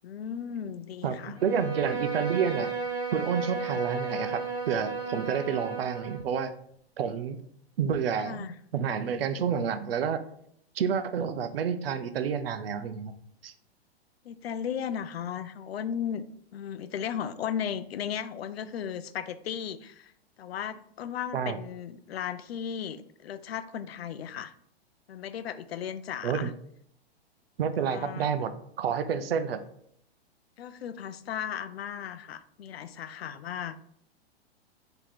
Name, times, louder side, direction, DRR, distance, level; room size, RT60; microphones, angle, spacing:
voice 1, 0.0-1.4 8.2-8.5 14.2-16.2 16.5-20.1 20.4-24.5 25.1-26.5 27.8-28.3 30.6-33.8, left 8 dB, 70° left, 12 dB, 0.5 m, -36 dB
voice 2, 1.0-2.7 3.1-6.5 7.0-7.4 7.8-10.2 10.7-13.1 13.4-13.5 21.3-21.6 26.2-26.5 27.6-28.5 28.8-29.6, right 7 dB, 65° right, 10 dB, 0.6 m, -29 dB
Bowed string instrument, 1.3-6.3, right 4 dB, 10° right, 1.3 m, -33 dB
4.5 x 2.9 x 3.8 m, 0.68 s
hypercardioid pair, 115°, 32 cm